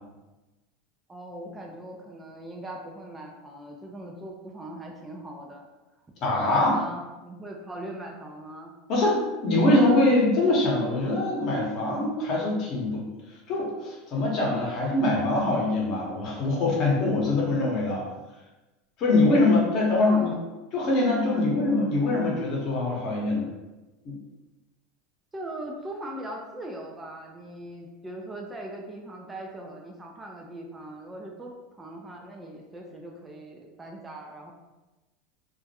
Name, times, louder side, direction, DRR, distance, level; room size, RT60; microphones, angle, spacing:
voice 1, 1.1-5.7 6.6-8.7 20.0-20.4 21.3-21.6 25.3-34.5, right 1 dB, 15° right, 0 dB, 0.3 m, -40 dB
voice 2, 6.2-6.8 8.9-13.1 13.5-18.1 19.0-20.3 20.7-23.5 24.0-24.1, left 2 dB, 45° left, -3 dB, 0.8 m, -23 dB
2.3 x 2.1 x 2.7 m, 1.1 s
supercardioid pair, 125°, 0 cm